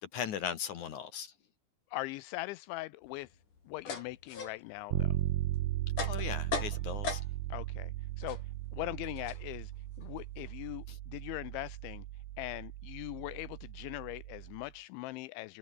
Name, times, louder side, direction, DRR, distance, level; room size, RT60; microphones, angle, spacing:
voice 1, 0.0-1.3 6.1-7.2 10.9-11.0, left 8 dB, 65° left, 1.9 m, -38 dB
voice 2, 1.9-3.3 3.7-5.1 7.5-7.9 8.2-8.4 8.7-9.7 10.0-12.0 12.4-15.6, left 20 dB, 85° left, 2.7 m, -41 dB
sound 1, 3.1-7.6 7.9-10.8, left 5 dB, 40° left, 6.1 m, -42 dB
Bass guitar, 4.9-14.7, right 14 dB, 75° right, 3.9 m, -37 dB
omnidirectional pair, 5.9 m